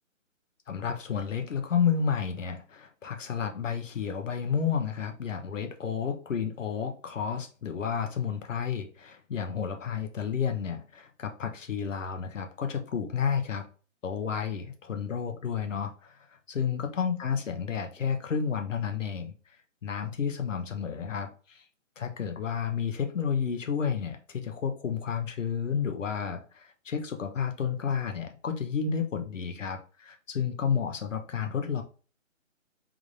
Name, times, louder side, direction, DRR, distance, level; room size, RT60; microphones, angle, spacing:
voice 1, 0.7-13.7 14.0-19.3 19.8-21.6 22.0-31.8, left 7 dB, 70° left, 0.9 m, -31 dB
3.6 x 2.5 x 3.2 m
hypercardioid pair, 170°, 40 cm